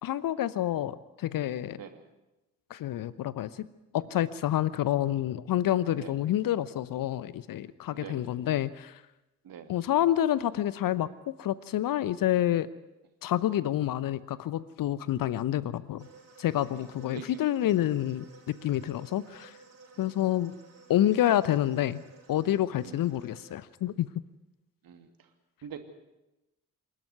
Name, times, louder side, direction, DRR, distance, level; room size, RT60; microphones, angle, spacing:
voice 1, 0.0-1.8 2.7-3.7 3.9-9.0 9.7-12.7 13.2-16.1 16.4-19.6 20.0-20.5 20.9-22.0 22.3-24.1, left 12 dB, 45° left, 17 dB, 0.9 m, -28 dB
voice 2, 7.9-8.3 9.4-9.7 16.8-17.2 20.0-20.1 22.8-23.0 24.8-25.3 25.6-25.8, right 8 dB, 45° right, 6 dB, 2.8 m, -45 dB
sound 1, 16.0-23.6, right 4 dB, 30° right, 4.8 m, -54 dB
27.5 x 12.5 x 9.5 m, 1.0 s
figure-of-eight pair, 40°, 46 cm